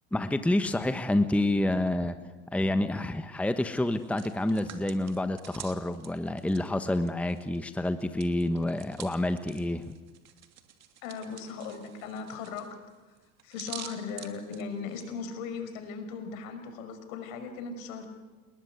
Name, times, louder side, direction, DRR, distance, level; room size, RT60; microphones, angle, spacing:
voice 1, 0.1-2.1 2.5-9.9, left 1 dB, 5° left, 9 dB, 1.2 m, -28 dB
Hands, 3.9-7.6 7.9-15.1, right 9 dB, 35° right, 2.9 m, -48 dB
voice 2, 11.0-12.7 13.4-18.1, left 5 dB, 65° left, 8 dB, 5.6 m, -38 dB
29.0 x 20.5 x 8.3 m, 1.3 s
hypercardioid pair, 100°, 43 cm